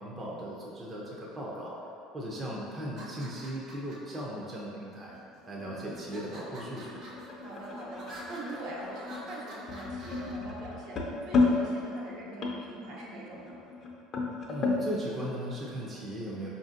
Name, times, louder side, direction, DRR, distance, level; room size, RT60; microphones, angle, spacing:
voice 1, 0.0-1.8 2.1-5.1 5.5-7.0 14.5-16.5, right 1 dB, 25° right, -5 dB, 0.5 m, -37 dB
sound 1, 2.8-4.2 4.9-5.4 5.9-10.3, right 1 dB, 50° right, 1.1 m, -47 dB
sound 2, 5.1-14.9, left 3 dB, 40° left, 0.5 m, -33 dB
voice 2, 7.4-11.0 11.2-13.6, right 1 dB, 70° right, -5 dB, 0.9 m, -43 dB
4.8 x 2.6 x 2.5 m, 2.6 s
supercardioid pair, 110°, 0 cm